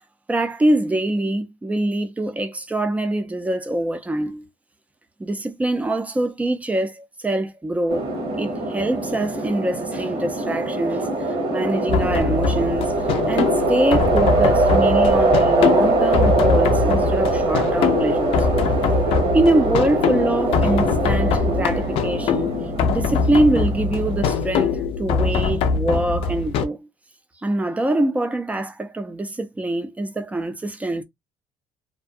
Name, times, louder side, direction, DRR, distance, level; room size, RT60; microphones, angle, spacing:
voice 1, 0.3-4.5 5.2-8.1 8.4-11.1 11.5-12.9 13.3-18.5 19.3-22.5 22.9-26.9 27.4-31.0, right 1 dB, 15° right, 0.5 m, -24 dB
sound 1, 7.9-24.2, right 2 dB, 65° right, 1.1 m, -22 dB
sound 2, 11.9-26.7, left 5 dB, 70° left, 0.4 m, -23 dB
2.6 x 2.1 x 2.5 m
cardioid pair, 105°, 10 cm